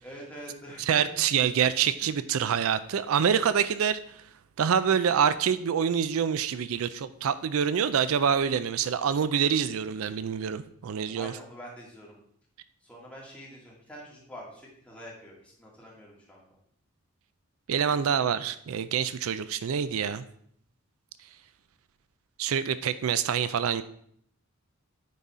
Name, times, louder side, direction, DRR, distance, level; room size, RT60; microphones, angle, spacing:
voice 1, 0.0-1.1 2.0-2.1 11.1-12.2 12.8-16.5 17.8-18.2, equal, 5° left, -5 dB, 2.1 m, -46 dB
voice 2, 0.9-4.0 4.6-11.3 17.7-20.2 22.4-23.8, right 7 dB, 75° right, 13 dB, 0.4 m, -26 dB
9.3 x 4.1 x 4.7 m, 0.66 s
head